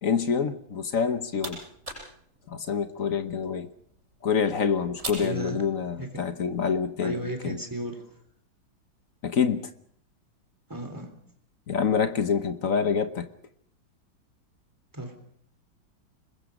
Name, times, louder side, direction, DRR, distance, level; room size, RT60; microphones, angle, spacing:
voice 1, 0.0-1.6 2.5-3.7 4.2-7.6 9.2-9.7 11.7-13.3, left 6 dB, 50° left, 1.3 m, -26 dB
sound 1, 0.9-6.2, right 2 dB, 35° right, 7.8 m, -43 dB
voice 2, 5.2-5.6 6.0-6.2 7.0-8.0 10.7-11.1 14.9-15.1, right 1 dB, 10° right, 3.4 m, -34 dB
26.0 x 21.5 x 5.2 m
omnidirectional pair, 2.2 m